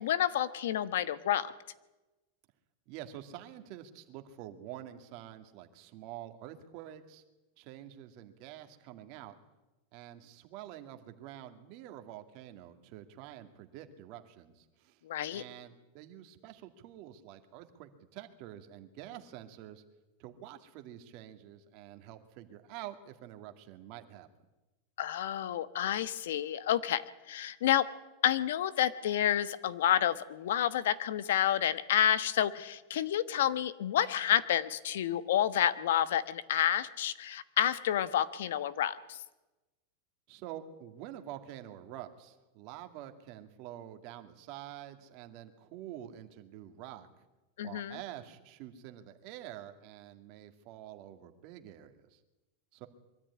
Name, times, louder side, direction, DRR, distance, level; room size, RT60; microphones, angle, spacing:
voice 1, 0.0-1.5 15.0-15.4 25.0-27.9 28.2-39.2 47.6-48.0, left 11 dB, 80° left, 16 dB, 1.2 m, -29 dB
voice 2, 2.9-7.2 7.6-9.3 9.9-15.0 15.3-19.8 20.2-24.3 40.3-47.1 47.6-52.2 52.7-52.9, right 12 dB, 50° right, 7 dB, 2.2 m, -47 dB
23.0 x 13.5 x 9.8 m, 1.1 s
supercardioid pair, 145°, 0 cm